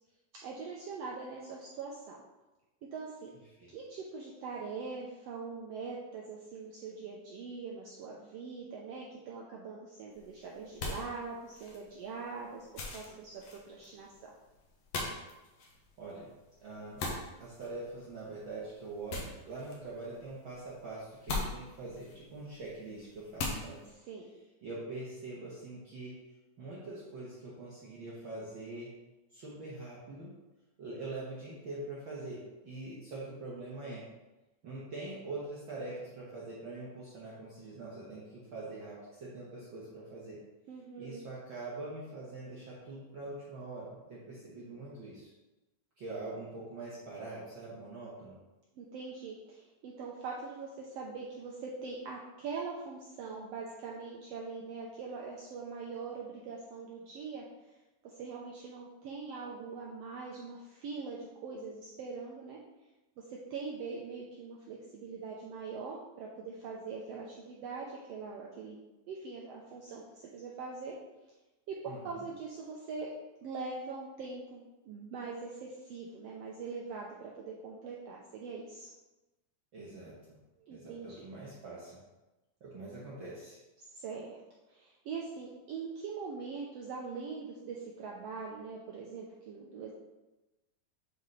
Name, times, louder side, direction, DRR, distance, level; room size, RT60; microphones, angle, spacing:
voice 1, 0.4-2.2 2.9-3.3 3.7-14.3 24.1-24.3 40.7-41.2 48.8-57.4 58.0-62.6 63.3-68.8 69.1-70.9 71.7-73.1 73.4-78.9 80.6-81.3 83.9-84.4 84.7-89.9, right 4 dB, 80° right, -2 dB, 1.4 m, -42 dB
sound 1, 10.1-23.9, left 3 dB, 65° left, 1.9 m, -43 dB
voice 2, 16.0-16.3 16.6-17.0 17.4-23.8 24.6-26.1 26.6-28.9 29.3-30.3 30.8-34.0 34.6-40.4 41.0-45.3 46.0-48.4 71.9-72.2 79.7-80.1 80.7-82.0 82.6-83.6, right 2 dB, 60° right, -7 dB, 1.4 m, -43 dB
9.1 x 4.1 x 3.2 m, 1.1 s
omnidirectional pair, 3.5 m